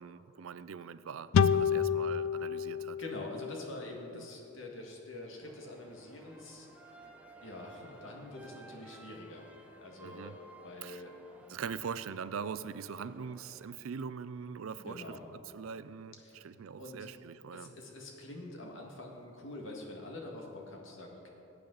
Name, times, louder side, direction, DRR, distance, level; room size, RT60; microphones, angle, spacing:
voice 1, 0.0-3.0 4.1-4.3 10.0-10.4 10.8-11.0 11.5-17.7, right 6 dB, 85° right, 14 dB, 0.4 m, -42 dB
sound 1, 1.3-4.7, left 7 dB, 85° left, 0.4 m, -30 dB
voice 2, 3.0-6.7 7.4-9.5 9.8-10.3 10.6-11.1 11.5-11.6 14.8-15.3 16.2-16.4 16.8-17.1 17.5-21.3, left 1 dB, 70° left, 0 dB, 1.9 m, -45 dB
sound 2, 5.4-13.7, right 2 dB, 5° right, 0.8 m, -56 dB
18.0 x 8.4 x 4.0 m, 2.9 s
head